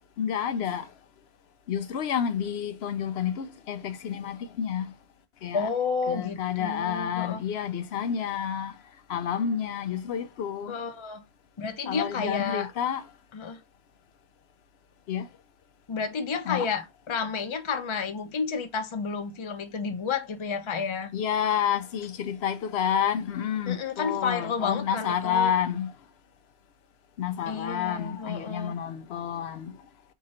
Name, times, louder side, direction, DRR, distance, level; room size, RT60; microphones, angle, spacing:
voice 1, 0.2-0.9 1.7-4.9 5.4-5.7 6.1-8.7 9.1-10.7 11.9-13.1 15.1-15.3 16.4-16.7 21.1-25.9 27.2-29.7, left 8 dB, 80° left, 0.8 m, -29 dB
voice 2, 5.5-7.4 10.7-11.2 11.6-12.7 13.3-13.6 15.9-21.1 23.7-25.5 27.5-28.8, left 5 dB, 35° left, 0.6 m, -31 dB
3.8 x 2.9 x 4.1 m
omnidirectional pair, 1.0 m